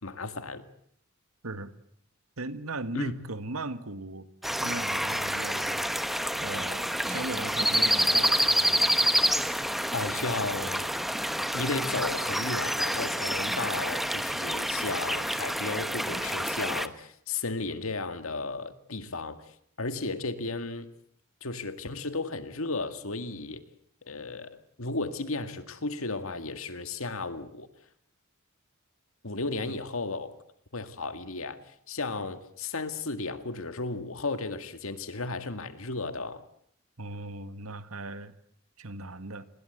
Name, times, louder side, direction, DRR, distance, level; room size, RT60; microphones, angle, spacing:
voice 1, 0.0-0.7 2.9-3.1 9.9-10.9 11.5-19.4 19.8-20.9 21.4-23.6 24.0-27.7 29.2-30.3 30.7-31.6 31.9-36.4, left 3 dB, 70° left, 2.1 m, -34 dB
voice 2, 2.4-4.3 4.6-5.9 6.4-8.9 29.6-29.8 37.0-38.3 38.8-39.5, right 2 dB, 90° right, 1.8 m, -38 dB
sound 1, 4.4-16.9, equal, ahead, 1.2 m, -28 dB
29.0 x 21.5 x 8.1 m
head